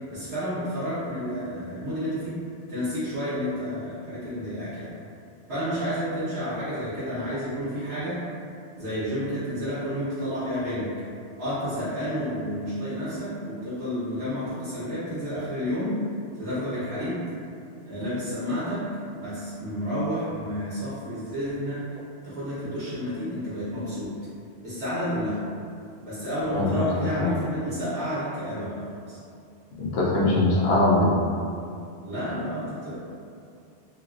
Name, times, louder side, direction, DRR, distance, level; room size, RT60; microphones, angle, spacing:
voice 1, 0.1-2.3 2.7-4.9 5.5-8.2 8.8-10.9 11.4-15.9 16.4-17.2 17.9-18.8 19.1-21.8 22.2-24.1 24.6-25.4 26.0-29.2 32.0-32.9, equal, 65° right, -13 dB, 1.1 m, -30 dB
voice 2, 26.5-26.9 27.2-27.3 29.8-31.1, left 2 dB, 65° left, -4 dB, 0.8 m, -21 dB
3.1 x 2.3 x 2.4 m, 2.4 s
omnidirectional pair, 1.2 m